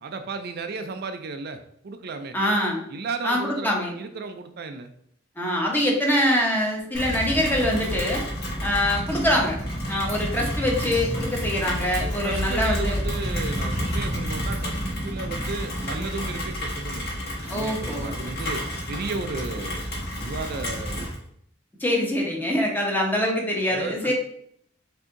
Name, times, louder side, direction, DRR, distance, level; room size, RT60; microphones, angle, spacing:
voice 1, 0.0-2.4 2.9-4.9 12.0-18.6 18.9-21.1 23.7-24.1, right 4 dB, 55° right, 8 dB, 0.4 m, -34 dB
voice 2, 2.3-2.8 3.2-3.9 5.4-8.2 8.6-9.6 9.9-13.0 17.5-18.1 21.8-24.1, equal, 10° left, -1 dB, 1.0 m, -24 dB
Rain, 6.9-21.1, equal, 55° left, 1.7 m, -30 dB
4.9 x 2.7 x 3.7 m, 0.68 s
head